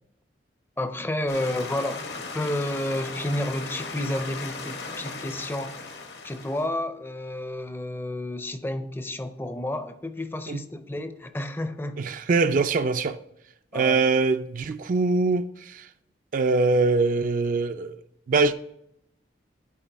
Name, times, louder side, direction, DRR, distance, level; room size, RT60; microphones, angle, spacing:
voice 1, 0.8-5.8 6.2-12.0 13.7-14.0, left 1 dB, 15° left, 0.5 m, -31 dB
sound 1, 1.3-6.7, left 4 dB, 70° left, 1.0 m, -37 dB
voice 2, 12.0-13.2 13.7-15.9 16.3-18.0 18.3-18.5, right 3 dB, 50° right, 0.3 m, -23 dB
11.5 x 4.3 x 3.4 m
head